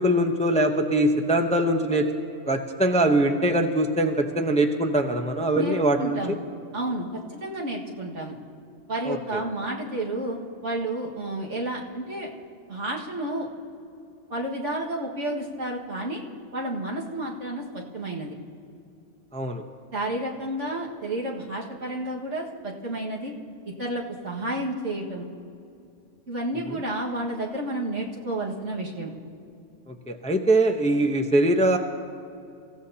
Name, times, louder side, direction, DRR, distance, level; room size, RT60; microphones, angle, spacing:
voice 1, 0.0-2.0 2.5-6.2 9.1-9.4 19.3-19.6 29.9-31.8, right 1 dB, 5° left, 4 dB, 0.7 m, -22 dB
voice 2, 5.6-6.4 6.7-8.4 8.9-12.3 12.7-13.5 14.3-16.2 16.5-18.4 19.9-23.3 23.8-25.3 26.3-29.1, right 1 dB, 70° right, -2 dB, 2.2 m, -31 dB
28.5 x 15.5 x 2.9 m, 2.6 s
omnidirectional pair, 1.3 m